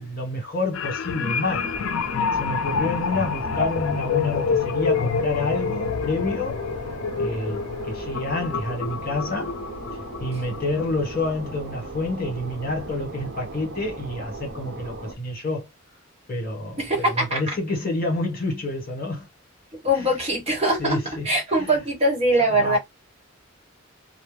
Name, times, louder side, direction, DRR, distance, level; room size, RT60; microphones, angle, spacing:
voice 1, 0.0-1.7 2.3-6.6 7.2-9.6 10.2-15.7 16.3-19.3 19.9-20.1 20.8-21.2 22.5-22.8, left 2 dB, 45° left, 1.4 m, -28 dB
sound 1, 0.7-11.5 11.9-12.1, left 5 dB, 75° left, 0.4 m, -27 dB
sound 2, 1.5-15.2, right 2 dB, 55° right, 0.9 m, -38 dB
voice 2, 16.8-17.5 19.8-21.0 21.2-22.8, right 1 dB, 30° right, 1.2 m, -22 dB
2.5 x 2.2 x 3.2 m
head